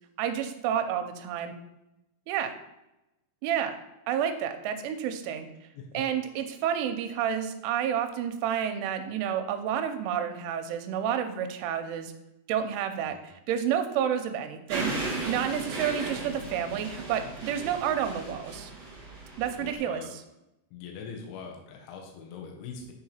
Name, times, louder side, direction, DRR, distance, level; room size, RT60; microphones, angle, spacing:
voice 1, 0.2-1.5 2.3-2.5 3.4-3.7 4.1-5.5 5.9-12.1 12.5-18.7 19.4-20.0, right 9 dB, 90° right, 7 dB, 3.1 m, -30 dB
sound 1, 14.7-19.7, right 2 dB, 40° right, 3.2 m, -36 dB
voice 2, 19.6-20.1 20.7-22.9, left 5 dB, 80° left, 1 dB, 3.4 m, -42 dB
8.9 x 4.8 x 4.3 m, 0.91 s
omnidirectional pair, 5.6 m